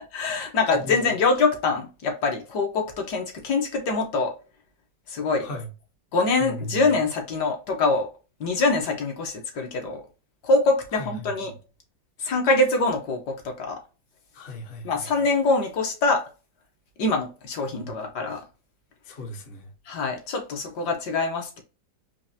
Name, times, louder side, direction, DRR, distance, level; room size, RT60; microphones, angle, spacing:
voice 1, 0.1-4.3 5.1-5.5 6.1-8.1 8.4-10.0 10.4-11.5 12.2-13.8 14.8-16.2 17.0-18.4 19.9-21.6, left 3 dB, 65° left, 1.4 m, -24 dB
voice 2, 6.4-6.8 11.0-11.3 14.3-14.9 17.8-17.9 19.1-19.6, left 2 dB, 45° left, 0.7 m, -36 dB
4.5 x 2.5 x 2.6 m
omnidirectional pair, 2.0 m